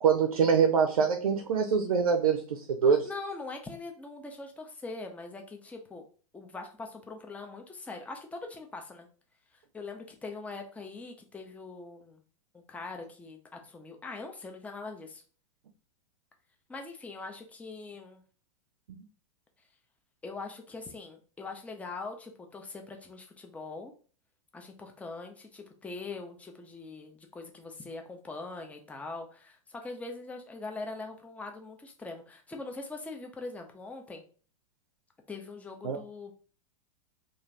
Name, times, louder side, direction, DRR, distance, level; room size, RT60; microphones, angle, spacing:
voice 1, 0.0-3.1 35.8-36.0, right 6 dB, 80° right, 0.5 m, -24 dB
voice 2, 3.0-6.0 6.3-9.1 9.7-12.2 12.5-15.2 16.7-18.2 20.2-23.9 24.5-34.2 35.3-36.3, left 3 dB, 10° left, 0.5 m, -42 dB
2.5 x 2.4 x 3.2 m
hypercardioid pair, 100°, 18 cm